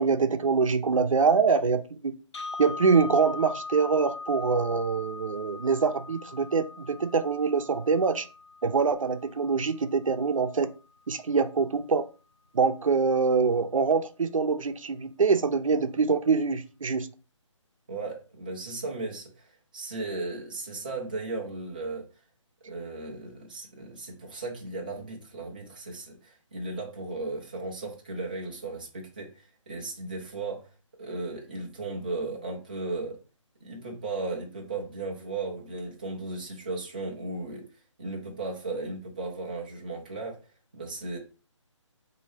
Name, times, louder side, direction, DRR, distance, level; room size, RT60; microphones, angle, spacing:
voice 1, 0.0-2.1 2.6-8.3 8.6-10.7 11.1-12.0 12.5-17.1, right 5 dB, 80° right, 0.6 m, -24 dB
sound 1, 2.3-10.4, left 4 dB, 55° left, 0.6 m, -41 dB
voice 2, 17.9-19.5 19.7-22.1 22.6-30.7 31.0-33.2 33.6-37.7 38.0-40.4 40.7-41.2, right 3 dB, 15° right, 0.5 m, -36 dB
4.0 x 2.7 x 3.2 m
hypercardioid pair, 175°, 17 cm